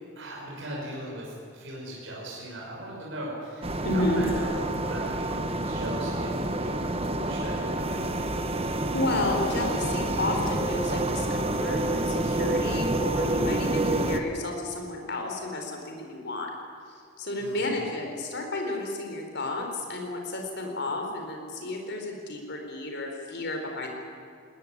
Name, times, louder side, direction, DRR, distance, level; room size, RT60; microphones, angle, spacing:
voice 1, 0.2-6.9 7.2-8.0 17.4-17.7, right 1 dB, 55° right, -4 dB, 5.8 m, -38 dB
sound 1, 3.6-14.2, right 1 dB, 25° right, 1.3 m, -28 dB
voice 2, 3.8-4.2 8.9-16.5 17.2-23.9, left 2 dB, 50° left, 2 dB, 4.6 m, -31 dB
20.0 x 19.5 x 9.8 m, 2.5 s
head